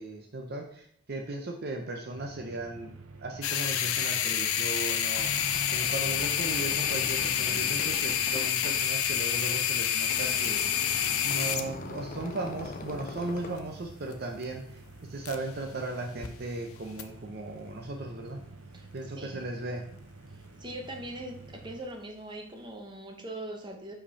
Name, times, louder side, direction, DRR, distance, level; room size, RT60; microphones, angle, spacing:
voice 1, 0.0-2.9 3.2-10.9 11.2-14.8 15.1-18.4 18.9-19.8, right 2 dB, 50° right, 3 dB, 0.6 m, -37 dB
sound 1, 2.1-21.8, right 3 dB, 85° right, 0.8 m, -49 dB
sound 2, 3.4-15.7 16.0-16.3 17.0-17.1, left 9 dB, 90° left, 0.5 m, -29 dB
sound 3, 4.8-13.6, left 3 dB, 40° left, 0.5 m, -42 dB
voice 2, 20.6-21.4 21.6-23.9, right 1 dB, 20° right, 2 dB, 0.9 m, -41 dB
5.3 x 5.1 x 4.1 m, 0.64 s
head